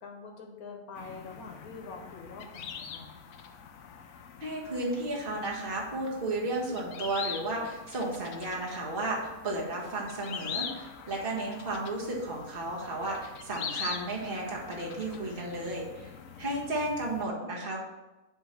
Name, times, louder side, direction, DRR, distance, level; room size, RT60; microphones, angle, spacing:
voice 1, 0.0-3.1, left 4 dB, 85° left, 1 dB, 1.5 m, -45 dB
sound 1, 1.0-17.2, left 7 dB, 65° left, 0.9 m, -43 dB
voice 2, 4.4-16.1 16.4-17.8, right 2 dB, 40° right, -3 dB, 1.6 m, -33 dB
7.8 x 3.2 x 5.7 m, 1.1 s
omnidirectional pair, 1.5 m